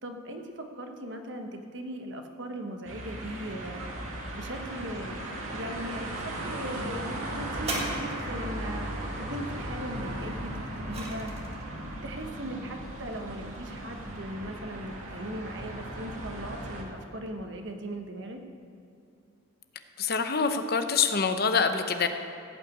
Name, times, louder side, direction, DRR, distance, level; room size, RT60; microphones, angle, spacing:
voice 1, 0.0-3.8 4.3-11.3 11.7-18.4, right 1 dB, 55° right, 5 dB, 1.1 m, -39 dB
sound 1, 2.9-16.8, right 1 dB, 80° right, 2.2 m, -37 dB
sound 2, 7.6-8.6 10.3-11.7 12.5-12.6, right 2 dB, 30° right, 1.7 m, -37 dB
voice 2, 20.0-22.1, left 5 dB, 45° left, 8 dB, 0.7 m, -25 dB
16.0 x 5.8 x 8.5 m, 2.4 s
head